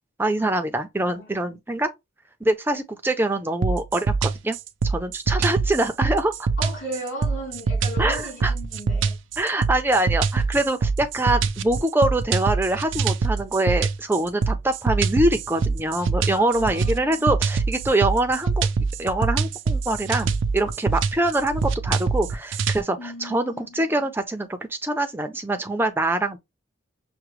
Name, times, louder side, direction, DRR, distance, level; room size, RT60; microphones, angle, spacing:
voice 1, 0.2-1.9 2.4-4.6 4.8-6.3 8.0-8.5 9.4-18.7 19.0-26.4, right 1 dB, 10° right, 0.5 m, -24 dB
voice 2, 1.0-1.6 6.6-9.1 16.3-17.3 23.0-24.1, equal, 75° left, 2.7 m, -36 dB
sound 1, 3.6-22.8, right 4 dB, 75° right, 0.4 m, -24 dB
5.9 x 2.1 x 3.0 m
head